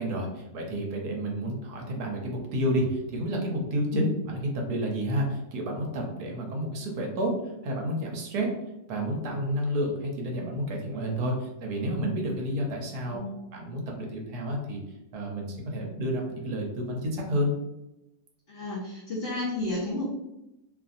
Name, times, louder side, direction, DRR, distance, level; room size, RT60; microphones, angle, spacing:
voice 1, 0.0-7.3 7.6-8.5 8.9-13.2 13.5-14.8 15.1-17.5, equal, 65° right, 1 dB, 1.1 m, -30 dB
voice 2, 18.5-20.0, left 2 dB, 50° left, -10 dB, 0.8 m, -32 dB
3.0 x 2.5 x 2.4 m, 0.91 s
omnidirectional pair, 1.9 m